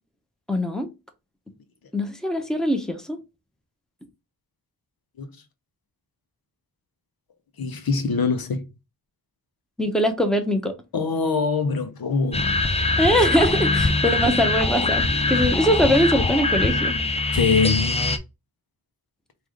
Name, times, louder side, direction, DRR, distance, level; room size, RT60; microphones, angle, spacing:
voice 1, 0.5-0.9 1.9-3.2 9.8-10.7 13.0-16.9, equal, ahead, 0.9 m, -22 dB
voice 2, 7.6-8.7 10.9-12.5 17.3-18.1, left 4 dB, 85° left, 0.7 m, -23 dB
sound 1, 12.3-18.2, left 3 dB, 20° left, 0.5 m, -22 dB
4.8 x 2.5 x 3.7 m
wide cardioid pair, 65°, 35 cm